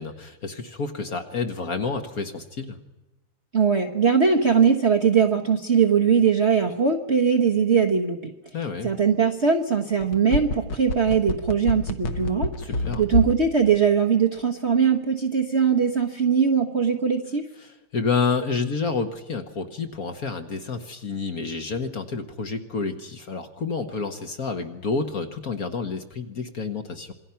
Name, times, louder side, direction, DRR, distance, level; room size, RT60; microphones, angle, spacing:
voice 1, 0.0-2.8 8.5-8.9 12.6-13.0 17.6-27.1, left 4 dB, 45° left, 7 dB, 1.5 m, -29 dB
voice 2, 3.5-8.3 8.8-12.5 13.0-17.4, right 6 dB, 40° right, 2 dB, 1.1 m, -21 dB
sound 1, 10.0-13.4 13.7-13.8, left 1 dB, 70° left, 2.0 m, -25 dB
27.0 x 21.0 x 5.7 m, 1.0 s
omnidirectional pair, 2.4 m